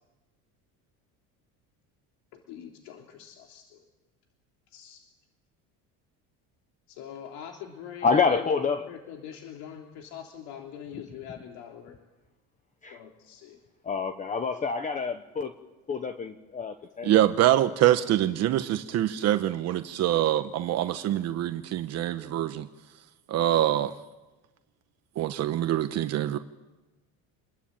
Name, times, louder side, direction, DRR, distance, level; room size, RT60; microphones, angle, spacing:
voice 1, 2.3-3.8 4.7-5.0 6.9-12.0 12.9-13.6, left 9 dB, 90° left, 3.4 m, -43 dB
voice 2, 8.0-8.9 12.8-13.0 13.8-15.5 15.9-17.3, left 5 dB, 20° left, 1.1 m, -27 dB
voice 3, 17.0-22.7 23.3-23.9 25.2-26.4, right 12 dB, 45° right, 1.1 m, -25 dB
28.5 x 22.0 x 8.9 m
cardioid pair, 165°, 36 cm